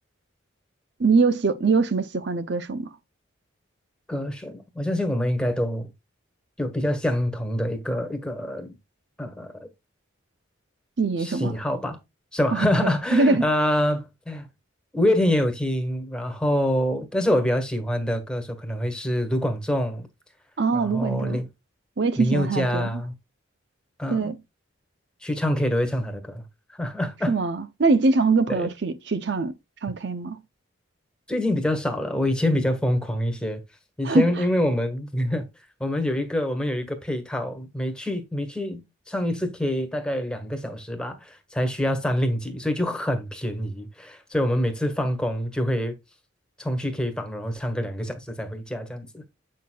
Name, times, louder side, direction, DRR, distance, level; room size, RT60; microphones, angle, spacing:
voice 1, 1.0-2.9 11.0-11.5 12.5-13.4 20.6-21.4 22.0-22.9 24.1-24.4 27.3-29.5 29.8-30.4 34.0-34.4, right 3 dB, 55° right, 0.5 m, -23 dB
voice 2, 4.1-5.9 6.6-8.7 9.2-9.7 11.2-12.0 12.3-14.5 14.9-20.1 20.7-21.5 22.2-23.1 24.0-24.3 25.2-26.4 26.7-27.4 28.5-28.7 31.3-33.6 34.0-35.4 35.8-45.9 46.6-49.2, left 1 dB, 5° left, 1.4 m, -26 dB
8.4 x 6.5 x 2.3 m
head